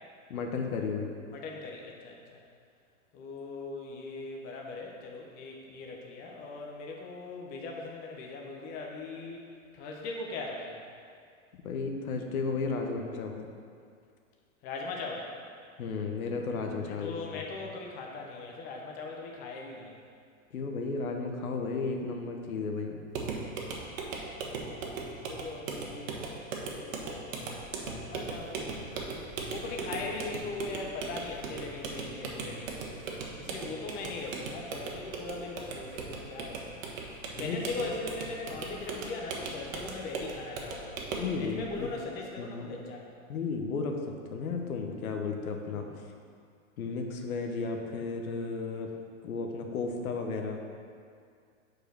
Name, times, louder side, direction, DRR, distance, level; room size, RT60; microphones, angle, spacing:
voice 1, 0.3-1.1 11.6-13.5 15.8-17.1 20.5-23.0 37.4-37.6 41.2-41.9 42.4-42.8 43.3-45.9 46.8-48.9 49.2-50.6, left 4 dB, 85° left, 3 dB, 1.0 m, -33 dB
voice 2, 1.3-2.4 3.1-9.4 9.7-10.8 14.6-15.3 16.8-20.0 24.4-26.5 26.7-29.2 29.5-37.0 37.3-43.1, left 3 dB, 20° left, 0 dB, 0.6 m, -40 dB
sound 1, 23.1-41.3, right 4 dB, 65° right, 1.2 m, -38 dB
sound 2, 27.5-42.0, right 1 dB, 10° right, 1.7 m, -54 dB
5.0 x 4.7 x 6.0 m, 2.2 s
hypercardioid pair, 140°, 42 cm